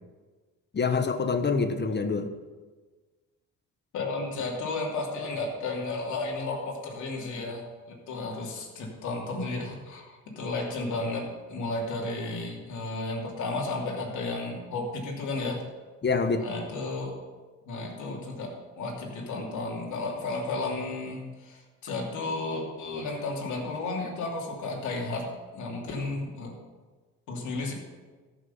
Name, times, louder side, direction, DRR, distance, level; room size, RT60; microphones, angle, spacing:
voice 1, 0.7-2.3 16.0-16.5, left 4 dB, 35° left, 9 dB, 1.1 m, -26 dB
voice 2, 3.9-7.6 8.1-15.6 16.4-17.1 17.6-18.5 18.8-25.2 25.5-26.5 27.3-27.7, left 3 dB, 75° left, -1 dB, 2.9 m, -33 dB
14.0 x 6.4 x 5.6 m, 1.3 s
cardioid pair, 90°, 30 cm